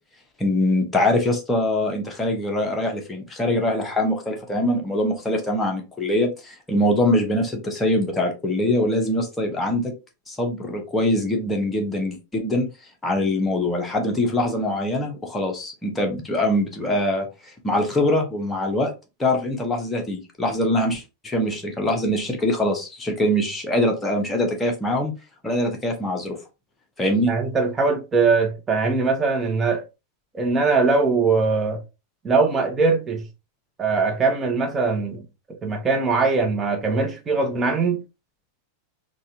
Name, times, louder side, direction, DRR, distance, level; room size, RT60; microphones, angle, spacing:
voice 1, 0.4-9.9 10.3-12.7 13.0-17.3 17.6-18.9 19.2-25.1 25.4-26.4 27.0-27.3, left 1 dB, 10° left, 1.0 m, -23 dB
voice 2, 27.3-29.8 30.3-31.8 32.2-33.2 33.8-35.3 35.6-38.0, right 4 dB, 20° right, 0.9 m, -21 dB
4.0 x 2.4 x 2.7 m
figure-of-eight pair, 90°, 0 cm